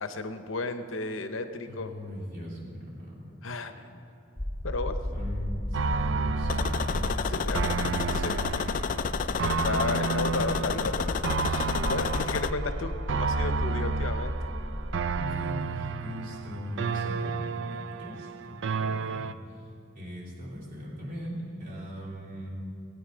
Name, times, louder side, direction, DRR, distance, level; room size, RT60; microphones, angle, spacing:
voice 1, 0.0-1.9 3.4-4.0 4.6-4.9 7.2-7.7 8.2-8.7 9.4-11.1 11.4-14.3, left 3 dB, 80° left, 9 dB, 0.8 m, -34 dB
voice 2, 1.7-3.3 5.1-7.3 7.7-8.3 15.1-19.6 19.9-22.5, equal, 45° right, -5 dB, 3.2 m, -39 dB
sound 1, 4.4-15.3, left 1 dB, 20° left, 1.8 m, -34 dB
sound 2, 5.7-19.3, right 5 dB, 65° right, 0.4 m, -32 dB
sound 3, 6.5-12.5, left 6 dB, 40° left, 0.3 m, -31 dB
17.0 x 9.1 x 5.1 m, 3.0 s
head